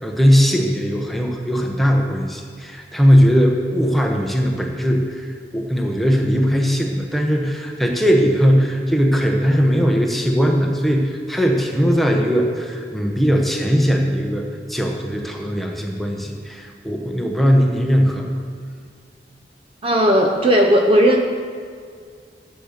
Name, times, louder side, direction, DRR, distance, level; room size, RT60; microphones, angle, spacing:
voice 1, 0.0-5.3 5.5-18.3, equal, ahead, 1 dB, 1.0 m, -19 dB
voice 2, 19.8-21.2, equal, 30° right, 2 dB, 0.7 m, -15 dB
9.0 x 7.9 x 6.5 m, 2.1 s
head